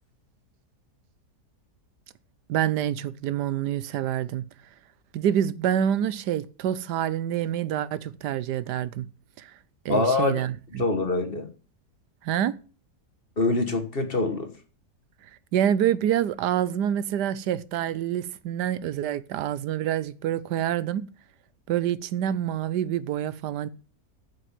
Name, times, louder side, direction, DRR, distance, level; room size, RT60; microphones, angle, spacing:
voice 1, 2.5-4.4 5.1-9.1 9.4-9.5 9.8-10.8 12.2-12.5 15.5-21.1 21.7-23.7, right 10 dB, 85° right, 1.3 m, -27 dB
voice 2, 9.9-10.4 10.8-11.5 13.4-14.5, left 3 dB, 35° left, 1.5 m, -24 dB
8.0 x 7.7 x 7.4 m
omnidirectional pair, 1.8 m